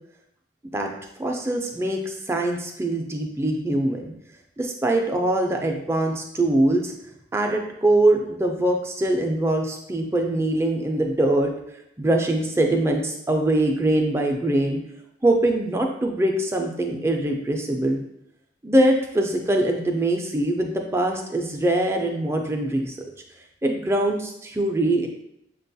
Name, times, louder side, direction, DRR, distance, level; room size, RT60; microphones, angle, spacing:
voice 1, 1.2-4.1 4.6-6.9 7.3-11.5 12.0-14.8 15.2-18.0 18.6-23.0 23.6-25.1, right 1 dB, 15° right, 2 dB, 0.3 m, -23 dB
6.0 x 2.2 x 2.6 m, 0.79 s
head